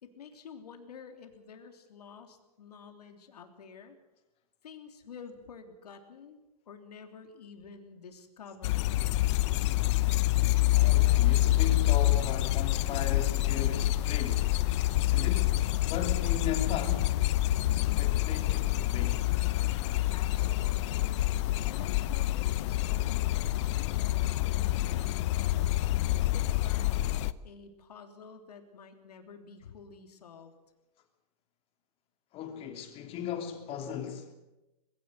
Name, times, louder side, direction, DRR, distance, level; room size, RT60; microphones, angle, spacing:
voice 1, 0.0-4.0 4.6-6.4 6.7-9.0 20.1-21.1 21.4-25.8 26.3-27.0 27.4-30.5, left 6 dB, 90° left, 3.3 m, -50 dB
sound 1, 8.6-27.3, left 15 dB, 50° left, 0.8 m, -27 dB
voice 2, 10.7-14.5 14.8-15.6 15.9-17.2 17.7-19.2 32.3-34.3, left 8 dB, 30° left, 3.1 m, -37 dB
21.5 x 17.0 x 8.0 m
hypercardioid pair, 145°, 20 cm